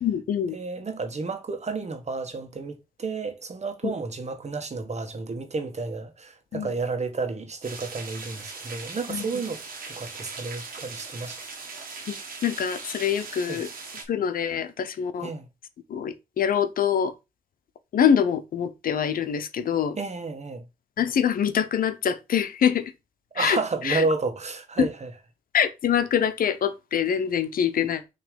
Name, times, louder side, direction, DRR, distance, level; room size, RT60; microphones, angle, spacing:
voice 1, 0.0-0.6 3.8-3.9 6.5-6.7 9.1-9.3 12.1-12.2 12.4-13.7 14.1-15.3 15.9-17.1 17.9-20.0 21.0-22.9 23.3-23.6 23.8-24.0 24.8-24.9 25.5-28.0, left 8 dB, 80° left, 0.8 m, -24 dB
voice 2, 0.5-11.4 13.5-13.6 15.2-15.5 20.0-20.6 23.3-25.1, right 4 dB, 50° right, 1.4 m, -31 dB
sound 1, 7.6-14.0, right 4 dB, 85° right, 1.7 m, -39 dB
6.0 x 3.2 x 5.1 m
cardioid pair, 55°, 15 cm